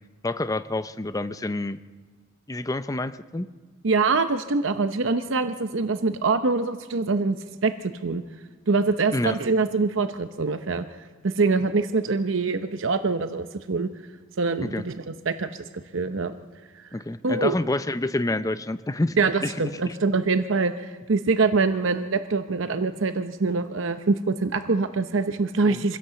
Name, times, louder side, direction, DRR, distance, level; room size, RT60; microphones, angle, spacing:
voice 1, 0.2-1.8 2.5-3.5 9.1-9.4 14.6-14.8 16.9-19.2 19.4-20.0 25.7-25.8, left 2 dB, 15° left, 12 dB, 0.6 m, -28 dB
voice 2, 3.8-7.4 7.6-8.2 8.7-10.8 11.2-13.9 14.4-16.3 17.2-17.5 19.2-26.0, right 4 dB, 70° right, 9 dB, 0.8 m, -24 dB
25.0 x 16.5 x 7.0 m, 1.4 s
head